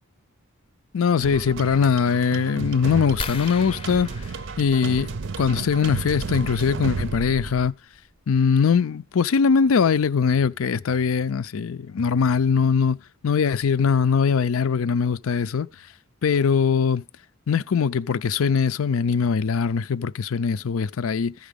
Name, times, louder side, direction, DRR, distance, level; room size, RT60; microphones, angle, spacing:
voice 1, 0.9-4.1 4.6-7.7 8.3-13.0 13.2-15.7 16.2-17.0 17.5-21.3, left 6 dB, 75° left, 0.5 m, -21 dB
sound 1, 1.2-7.7, right 4 dB, 60° right, 0.5 m, -32 dB
sound 2, 3.2-5.6 7.2-7.3 7.9-8.0 8.3-8.5, left 4 dB, 25° left, 0.6 m, -38 dB
14.5 x 5.0 x 5.2 m
head